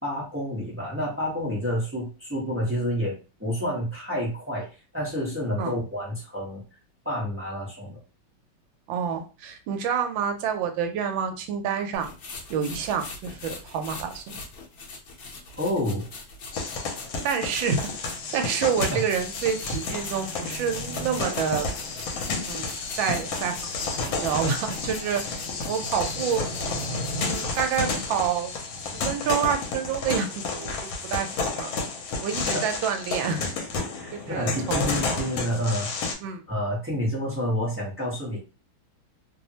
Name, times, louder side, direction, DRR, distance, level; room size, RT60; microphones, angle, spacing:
voice 1, 0.0-3.1 3.4-4.7 4.9-6.6 7.0-8.0 15.6-16.1 18.9-19.0 32.5-32.6 34.0-35.9 36.5-38.4, equal, 20° right, -5 dB, 0.4 m, -29 dB
voice 2, 8.9-12.1 12.5-14.4 17.2-17.8 18.3-21.7 22.4-22.7 23.0-23.6 24.1-25.2 25.7-26.5 27.1-28.5 28.8-31.7 32.2-33.5 34.1-35.0 36.2-36.4, right 7 dB, 80° right, 6 dB, 1.3 m, -28 dB
sound 1, 11.9-18.4 18.8-28.0, left 2 dB, 60° left, 1.0 m, -43 dB
sound 2, 16.5-36.1, left 3 dB, 80° left, 1.4 m, -31 dB
3.2 x 2.0 x 2.7 m, 0.33 s
omnidirectional pair, 2.1 m